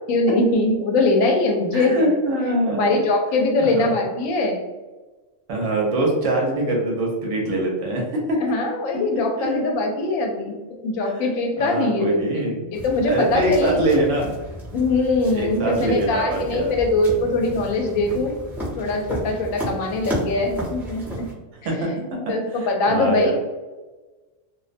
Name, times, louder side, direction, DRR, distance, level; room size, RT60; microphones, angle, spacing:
voice 1, 0.1-2.1 2.7-4.7 8.4-10.5 10.8-12.4 12.7-13.8 14.7-18.3 18.8-21.3 21.8-22.0 22.3-23.4, left 2 dB, 90° left, 2 dB, 1.0 m, -22 dB
voice 2, 1.7-3.0 3.6-3.9 5.5-8.0 8.3-8.4 9.4-9.6 11.0-11.2 11.6-12.7 13.1-14.3 15.3-16.7 21.6-21.9 22.3-22.4 22.6-23.4, right 1 dB, 70° right, -1 dB, 1.0 m, -23 dB
sound 1, 12.7-21.3, equal, ahead, 0.5 m, -33 dB
2.5 x 2.1 x 2.5 m, 1.2 s
omnidirectional pair, 1.3 m